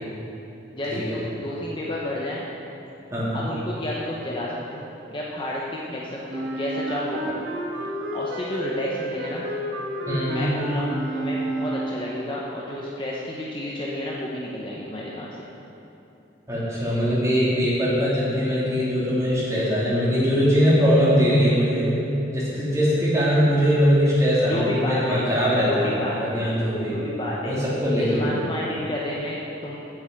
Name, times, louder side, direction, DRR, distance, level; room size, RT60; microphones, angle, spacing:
voice 1, 0.7-2.4 3.3-7.5 8.1-9.4 10.3-15.5 24.5-25.2 25.6-26.4 26.9-27.6 28.0-29.8, left 1 dB, 25° left, -4 dB, 0.9 m, -31 dB
voice 2, 3.1-3.5 10.1-10.5 16.5-21.9 22.3-27.0 27.4-28.3, equal, 15° right, -8 dB, 2.8 m, -21 dB
Wind instrument woodwind instrument, 6.3-12.0, right 1 dB, 55° right, 2.0 m, -30 dB
8.4 x 6.9 x 8.0 m, 2.9 s
head